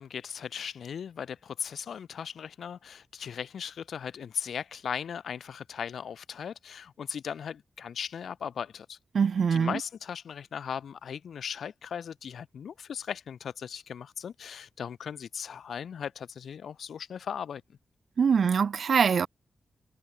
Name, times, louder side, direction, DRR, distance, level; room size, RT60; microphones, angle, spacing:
voice 1, 0.0-9.0 9.5-17.8, left 7 dB, 75° left, 1.0 m, -38 dB
voice 2, 9.1-9.7 18.2-19.3, right 6 dB, 60° right, 0.3 m, -23 dB
wide cardioid pair, 130°, 0 cm